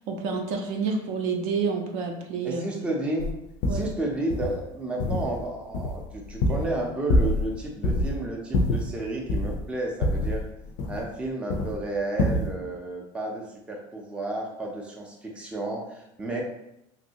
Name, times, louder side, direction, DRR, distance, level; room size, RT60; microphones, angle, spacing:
voice 1, 0.0-2.7 3.7-3.8, right 5 dB, 60° right, 3 dB, 0.5 m, -29 dB
voice 2, 2.4-3.3 3.7-10.4 10.9-16.4, right 2 dB, 5° right, -1 dB, 0.4 m, -32 dB
sound 1, 3.2-3.3 3.6-3.9 4.3-4.6 5.0-5.4 5.7-6.8 7.1-7.6 7.8-8.1 8.5-9.6 10.0-11.2 11.5-11.8 12.2-12.5, left 1 dB, 60° left, 0.4 m, -25 dB
3.0 x 2.6 x 2.8 m, 0.83 s
supercardioid pair, 140°, 15 cm